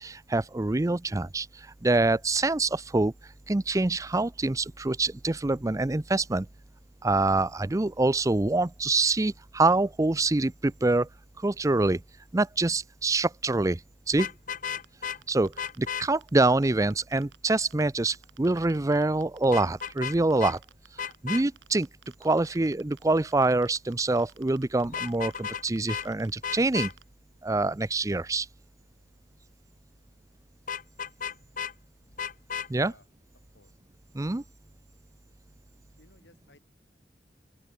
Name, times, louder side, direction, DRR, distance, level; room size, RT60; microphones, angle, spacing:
voice 1, 0.0-3.1 3.5-6.5 7.0-11.1 11.4-12.0 12.3-13.8 14.1-14.3 15.3-20.6 21.0-21.9 22.2-26.9 27.4-28.5 32.7-32.9 34.1-34.4, right 2 dB, 20° right, 0.5 m, -25 dB
Vehicle horn car horn honking, 14.1-15.2 15.6-16.1 19.5-20.1 20.4-20.5 21.0-21.4 24.8-25.6 25.9-26.1 26.4-26.9 30.7-31.7 32.2-32.7, left 7 dB, 50° left, 1.0 m, -33 dB
sound 1, 14.7-17.8 18.1-20.0 20.3-27.0, right 8 dB, 85° right, 2.4 m, -53 dB
voice 2, 32.7-33.1 33.5-33.7 36.0-36.6, left 2 dB, 75° left, 5.0 m, -58 dB
head